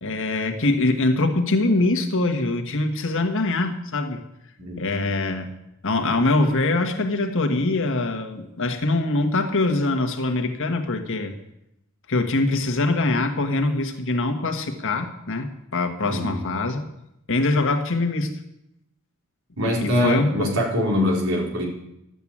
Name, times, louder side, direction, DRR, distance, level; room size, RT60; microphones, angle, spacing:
voice 1, 0.0-4.2 4.8-5.5 5.8-11.3 12.1-16.8 17.3-18.4 19.8-20.5, left 2 dB, 65° left, 6 dB, 1.6 m, -23 dB
voice 2, 16.1-16.4 19.6-21.7, left 1 dB, 70° right, -1 dB, 3.9 m, -23 dB
12.5 x 8.1 x 8.7 m, 0.82 s
head